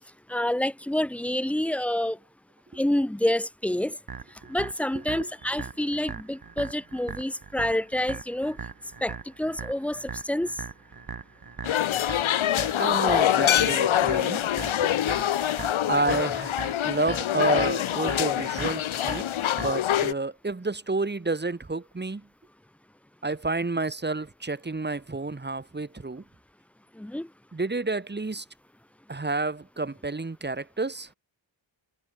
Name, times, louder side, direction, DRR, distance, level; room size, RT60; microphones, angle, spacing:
voice 1, 0.3-2.2 2.8-3.9 4.5-8.6 9.0-10.5 27.0-27.3, left 1 dB, 5° left, 0.4 m, -28 dB
sound 1, 4.1-20.1, right 5 dB, 50° right, 4.5 m, -40 dB
sound 2, 11.6-20.1, left 11 dB, 85° left, 0.9 m, -25 dB
voice 2, 12.8-14.4 14.8-14.9 15.9-16.5 16.8-19.2 19.5-22.2 23.2-26.2 27.5-28.4 29.1-31.1, right 3 dB, 20° right, 1.6 m, -30 dB
wide cardioid pair, 105°, 47 cm